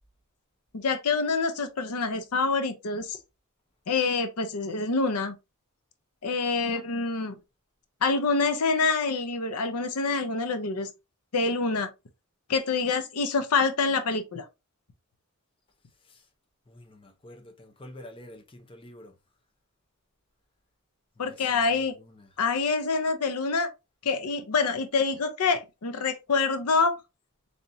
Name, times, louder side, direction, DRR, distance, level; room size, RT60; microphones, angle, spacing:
voice 1, 0.7-3.2 3.9-5.3 6.2-7.4 8.0-10.9 11.3-11.9 12.5-14.5 21.2-21.9 22.4-23.7 24.0-27.0, left 4 dB, 85° left, 0.7 m, -26 dB
voice 2, 16.7-19.1 21.2-22.4, left 1 dB, 25° left, 0.7 m, -48 dB
4.1 x 3.4 x 2.6 m
head